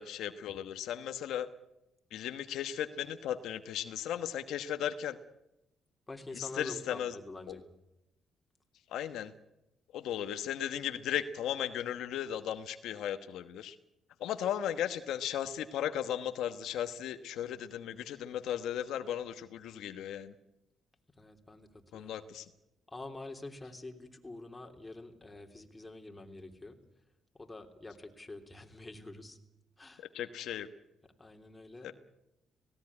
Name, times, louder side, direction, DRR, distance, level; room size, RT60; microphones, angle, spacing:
voice 1, 0.0-1.5 2.1-5.2 6.3-7.2 7.5-7.6 8.9-9.3 9.9-13.8 14.2-20.3 21.9-22.5 30.0-30.7 31.8-31.9, left 10 dB, 80° left, 9 dB, 1.1 m, -36 dB
voice 2, 6.1-7.6 21.2-21.7 21.9-22.1 22.9-26.8 27.3-29.4 29.8-30.1 31.2-31.9, left 2 dB, 15° left, 4 dB, 3.3 m, -46 dB
18.0 x 17.5 x 9.8 m, 0.89 s
cardioid pair, 90°, 0 cm